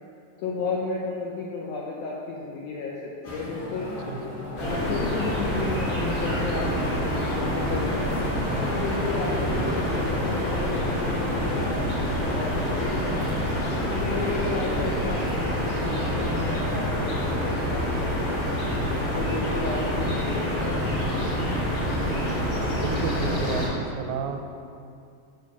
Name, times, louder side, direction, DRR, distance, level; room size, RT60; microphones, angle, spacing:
voice 1, 0.4-3.9 4.5-11.7 12.2-13.4 13.9-17.2 17.4-18.4 19.1-21.5, left 3 dB, 85° left, -3 dB, 2.0 m, -33 dB
sound 1, 3.2-16.2, left 1 dB, 55° left, 2.0 m, -37 dB
sound 2, 4.6-23.7, equal, 40° left, 2.4 m, -27 dB
voice 2, 22.8-24.4, right 5 dB, 85° right, 4 dB, 2.9 m, -31 dB
7.4 x 6.3 x 5.4 m, 2.4 s
omnidirectional pair, 5.1 m